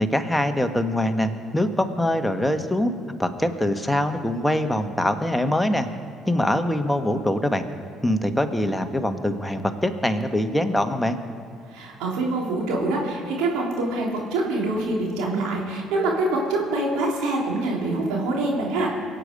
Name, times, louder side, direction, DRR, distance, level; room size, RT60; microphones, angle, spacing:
voice 1, 0.0-2.9 3.2-5.9 6.2-7.6 8.0-11.2, left 1 dB, 5° left, 6 dB, 1.4 m, -23 dB
voice 2, 11.7-18.9, right 2 dB, 70° right, -2 dB, 3.2 m, -25 dB
23.5 x 8.4 x 5.2 m, 2.2 s
hypercardioid pair, 60°, 0 cm